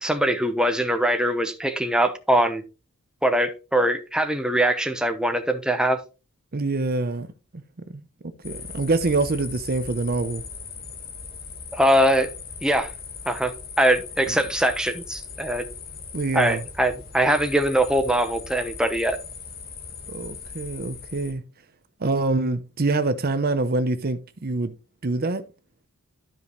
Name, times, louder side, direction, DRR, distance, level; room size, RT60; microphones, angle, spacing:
voice 1, 0.0-2.6 3.2-6.0 11.7-12.3 12.6-12.9 13.3-15.6 16.3-19.2, right 1 dB, 5° right, 0.9 m, -22 dB
voice 2, 6.5-7.3 7.9-10.4 14.3-14.4 16.1-16.6 20.1-21.4 22.0-24.7 25.0-25.4, right 3 dB, 45° right, 0.7 m, -25 dB
sound 1, 8.4-21.3, left 5 dB, 45° left, 1.5 m, -39 dB
12.5 x 5.2 x 3.1 m
head